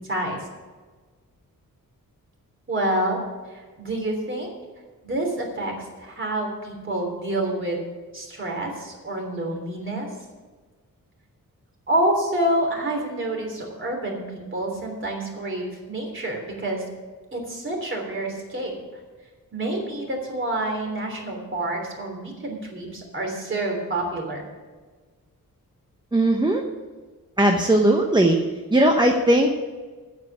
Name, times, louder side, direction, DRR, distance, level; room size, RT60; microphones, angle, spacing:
voice 1, 2.7-3.2 3.5-4.5 5.0-7.9 8.1-10.1 11.9-16.8 17.3-18.7 19.5-24.4, right 1 dB, 35° right, 1 dB, 3.3 m, -28 dB
voice 2, 26.1-26.6 27.4-28.4 28.7-29.5, right 1 dB, 15° right, 2 dB, 0.9 m, -18 dB
9.2 x 7.7 x 8.3 m, 1.4 s
wide cardioid pair, 120°, 34 cm